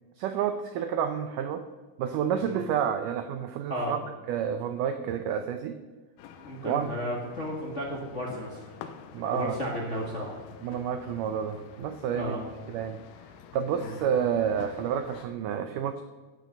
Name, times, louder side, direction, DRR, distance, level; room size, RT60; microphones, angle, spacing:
voice 1, 0.2-1.6 2.0-4.0 4.3-5.8 6.6-6.9 9.1-9.6 10.6-12.3 12.7-13.0 13.5-16.0, right 8 dB, 85° right, 9 dB, 1.8 m, -29 dB
sound 1, 6.2-15.3, left 8 dB, 85° left, 2.8 m, -48 dB
voice 2, 6.4-8.7 9.3-10.4 12.1-12.4 13.8-14.0, equal, 40° left, -2 dB, 1.0 m, -33 dB
15.0 x 9.4 x 5.3 m, 1.3 s
omnidirectional pair, 4.6 m